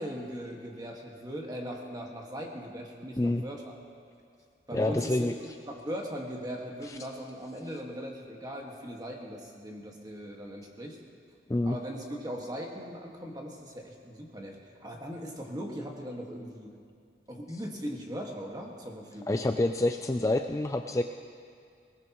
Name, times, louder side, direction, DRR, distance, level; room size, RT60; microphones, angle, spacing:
voice 1, 0.0-3.7 4.7-11.0 11.7-16.8 17.3-19.4, equal, 20° right, 0 dB, 1.7 m, -39 dB
voice 2, 4.7-5.3 6.8-7.0 11.5-11.8 19.3-21.0, left 2 dB, 20° left, 6 dB, 0.3 m, -27 dB
21.5 x 19.0 x 3.0 m, 2.3 s
head